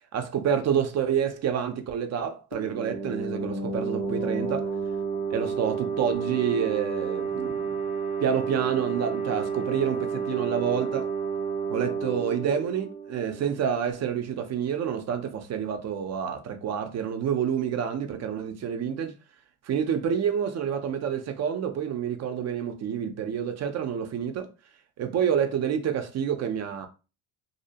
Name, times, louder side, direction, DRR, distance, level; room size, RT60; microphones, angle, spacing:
voice 1, 0.1-4.7 5.3-7.6 8.2-11.1 11.7-19.1 19.6-24.5 25.0-26.9, right 8 dB, 40° right, 0.5 m, -28 dB
sound 1, 2.5-13.9, right 5 dB, 20° left, 0.5 m, -31 dB
2.7 x 2.0 x 2.7 m
cardioid pair, 105°, 41 cm